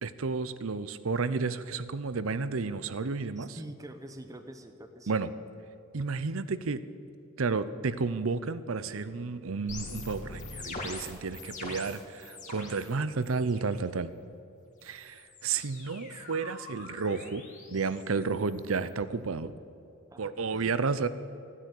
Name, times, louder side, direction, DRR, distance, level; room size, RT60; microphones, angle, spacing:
voice 1, 0.0-3.6 5.1-5.3 5.9-6.8 7.4-14.1 14.8-17.4 17.7-19.5 20.2-21.1, right 4 dB, 70° right, 14 dB, 0.7 m, -31 dB
voice 2, 3.4-5.2 20.1-20.8, right 1 dB, 15° right, 6 dB, 0.8 m, -46 dB
sound 1, 9.7-12.9 13.2-13.8 14.8-18.9, left 2 dB, 35° left, 2.2 m, -44 dB
15.5 x 9.8 x 8.3 m, 2.8 s
head